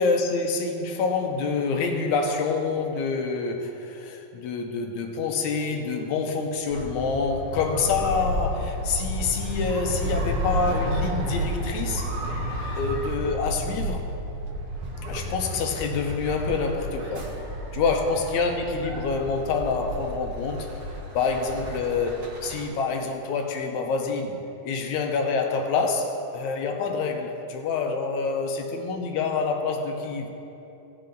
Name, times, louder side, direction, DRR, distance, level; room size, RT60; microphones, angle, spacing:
voice 1, 0.0-12.1 12.8-14.0 15.1-17.3 17.7-20.7 21.1-24.4 24.6-30.3, left 4 dB, 75° left, 3 dB, 2.0 m, -27 dB
sound 1, 6.7-22.7, equal, 55° right, 1.6 m, -31 dB
17.0 x 5.7 x 3.9 m, 2.9 s
omnidirectional pair, 3.7 m